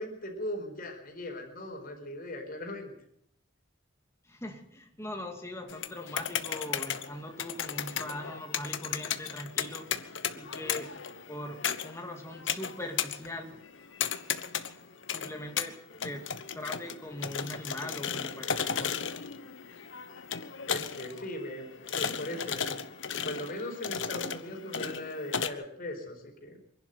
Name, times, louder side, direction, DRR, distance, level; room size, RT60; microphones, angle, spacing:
voice 1, 0.0-2.9 20.6-22.8 23.2-26.6, left 1 dB, 45° left, 2 dB, 4.6 m, -39 dB
voice 2, 4.2-10.0 10.3-11.0 11.3-13.6 15.1-15.8 16.0-19.1, left 1 dB, 15° left, 3 dB, 2.6 m, -41 dB
sound 1, 5.7-25.5, left 7 dB, 65° left, 1.2 m, -35 dB
24.5 x 11.5 x 9.3 m, 0.70 s
head